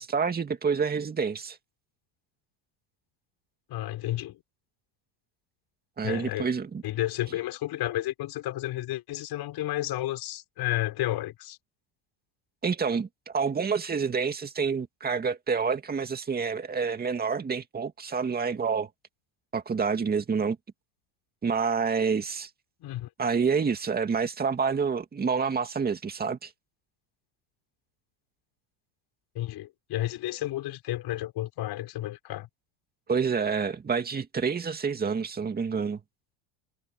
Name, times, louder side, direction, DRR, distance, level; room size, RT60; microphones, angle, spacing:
voice 1, 0.0-1.6 6.0-6.8 12.6-18.9 19.5-20.6 21.4-22.5 23.2-26.5 33.1-36.0, right 5 dB, 20° right, 2.2 m, -28 dB
voice 2, 3.7-4.4 6.0-6.5 6.8-11.6 22.8-23.1 29.3-32.5, left 14 dB, 50° left, 6.4 m, -32 dB
cardioid pair, 135°, 50 cm